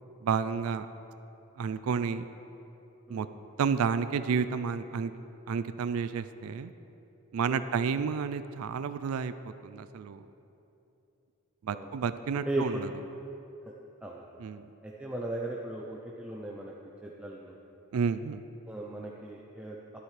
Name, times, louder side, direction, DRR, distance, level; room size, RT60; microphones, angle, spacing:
voice 1, 0.2-0.9 1.6-2.3 3.1-3.3 3.6-5.1 5.5-6.7 7.3-10.3 11.6-12.9 14.4-14.7 17.9-18.4, right 6 dB, 85° right, 12 dB, 0.4 m, -31 dB
voice 2, 12.5-12.8 13.7-13.8 14.0-14.2 14.8-16.7 17.0-17.6 18.7-19.8, right 1 dB, 5° right, -2 dB, 0.6 m, -36 dB
12.5 x 12.0 x 3.3 m, 2.9 s
head